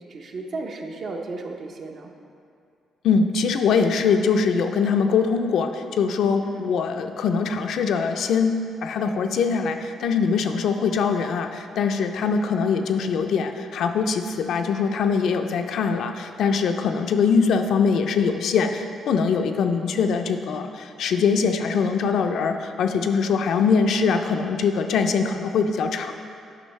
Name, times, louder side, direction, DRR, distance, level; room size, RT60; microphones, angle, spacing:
voice 1, 0.0-2.1 6.4-6.7, right 3 dB, 55° right, 2 dB, 0.7 m, -34 dB
voice 2, 3.0-26.1, left 5 dB, 70° left, 6 dB, 0.4 m, -22 dB
8.7 x 5.5 x 3.2 m, 2.4 s
cardioid pair, 90°, 0 cm